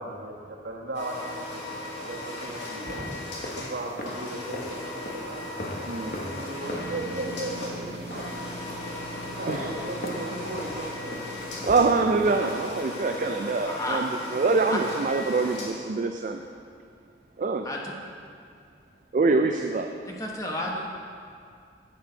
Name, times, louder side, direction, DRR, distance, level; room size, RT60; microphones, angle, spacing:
voice 1, 0.0-3.2 3.6-5.4 6.0-8.3 9.1-11.1, right 1 dB, 80° right, -1 dB, 1.3 m, -37 dB
sound 1, 0.9-15.7, left 2 dB, 85° left, 2.0 m, -37 dB
sound 2, 2.3-13.4, equal, 50° left, 1.1 m, -41 dB
sound 3, 6.6-15.6, right 1 dB, 60° right, 1.1 m, -43 dB
voice 2, 11.7-16.4 17.4-17.7 19.1-19.9, right 3 dB, 45° right, 4 dB, 0.4 m, -24 dB
voice 3, 13.7-14.0 14.7-14.8 17.6-18.0 20.1-20.9, left 1 dB, 20° left, -1 dB, 1.1 m, -31 dB
11.0 x 7.9 x 3.9 m, 2.3 s
head